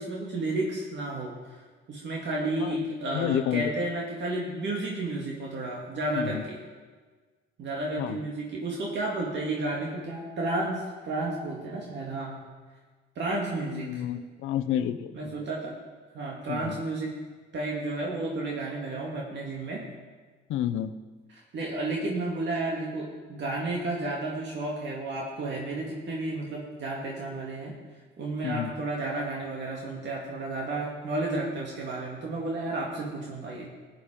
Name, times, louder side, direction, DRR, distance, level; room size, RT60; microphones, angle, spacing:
voice 1, 0.0-1.6 1.9-6.6 7.6-12.4 13.2-14.0 15.1-15.7 16.1-17.2 17.5-19.9 21.5-27.7 28.2-33.7, right 2 dB, 65° right, -3 dB, 2.2 m, -32 dB
voice 2, 3.1-3.7 6.1-6.4 8.0-8.2 13.7-15.3 16.5-16.8 20.5-20.9 28.4-28.7, left 10 dB, 85° left, 11 dB, 0.7 m, -30 dB
15.5 x 8.7 x 5.0 m, 1.4 s
cardioid pair, 90°, 20 cm